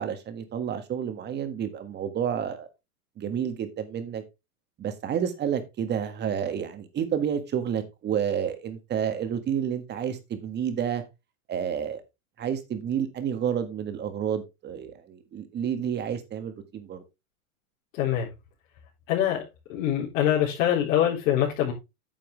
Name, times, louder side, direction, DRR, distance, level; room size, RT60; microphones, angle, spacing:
voice 1, 0.0-2.7 3.2-4.2 4.8-11.0 11.5-12.0 12.4-17.0, right 8 dB, 25° right, 1.6 m, -30 dB
voice 2, 18.0-18.3 19.1-19.4 19.7-21.7, left 11 dB, 60° left, 4.0 m, -24 dB
9.2 x 7.5 x 3.4 m
supercardioid pair, 135°, 42 cm